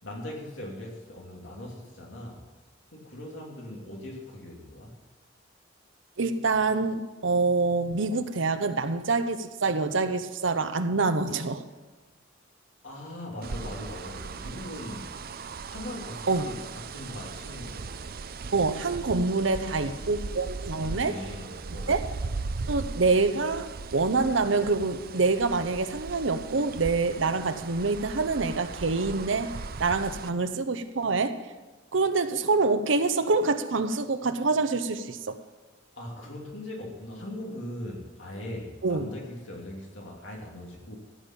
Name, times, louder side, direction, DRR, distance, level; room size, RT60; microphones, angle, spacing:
voice 1, 0.0-2.5 2.9-4.9 12.8-15.1 15.7-18.1 19.4-20.2 20.8-22.1 35.9-41.0, left 1 dB, 75° left, 2.9 m, -40 dB
voice 2, 6.2-11.6 16.3-16.5 18.5-21.2 21.9-22.0 22.7-29.5 29.8-31.4 31.9-35.4 38.8-39.1, right 3 dB, 80° right, 0.8 m, -26 dB
sound 1, 13.4-30.3, right 4 dB, 50° right, 0.5 m, -38 dB
15.0 x 5.5 x 8.9 m
head